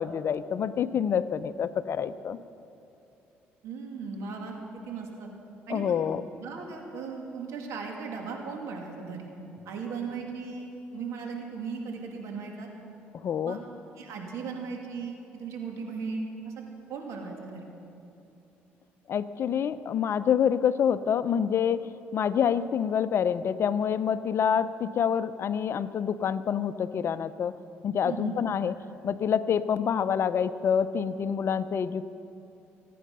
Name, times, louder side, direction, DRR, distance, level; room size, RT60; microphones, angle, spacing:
voice 1, 0.0-2.4 5.7-6.2 13.1-13.6 19.1-27.5 27.8-28.7 29.0-32.1, left 8 dB, 55° left, 14 dB, 0.6 m, -27 dB
voice 2, 3.6-5.3 5.7-6.0 6.4-9.3 9.7-12.7 13.4-13.6 14.0-16.6 16.9-17.7 28.0-28.7, right 5 dB, 70° right, 1 dB, 2.6 m, -37 dB
25.0 x 9.4 x 5.5 m, 2.7 s
supercardioid pair, 70°, 5 cm